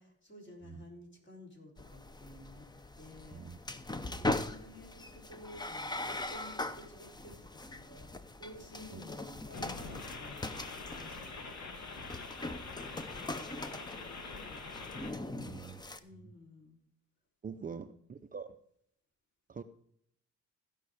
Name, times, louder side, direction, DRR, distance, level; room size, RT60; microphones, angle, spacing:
voice 1, 0.0-2.7 3.0-3.4 3.9-10.5 10.9-12.3 12.8-13.8 14.3-14.7 15.2-15.7 16.0-16.8 17.5-17.9, left 1 dB, 40° left, -1 dB, 4.1 m, -53 dB
sound 1, 1.8-16.0, left 2 dB, 15° left, 0.7 m, -41 dB
voice 2, 4.1-4.4 8.9-9.0 12.0-12.2 15.4-15.8 16.1-16.3 17.4-18.6 19.5-19.6, right 6 dB, 30° right, 9 dB, 0.6 m, -45 dB
sound 2, 9.5-15.1, left 4 dB, 70° left, 1.8 m, -45 dB
15.5 x 5.5 x 4.9 m, 0.70 s
cardioid pair, 90°, 30 cm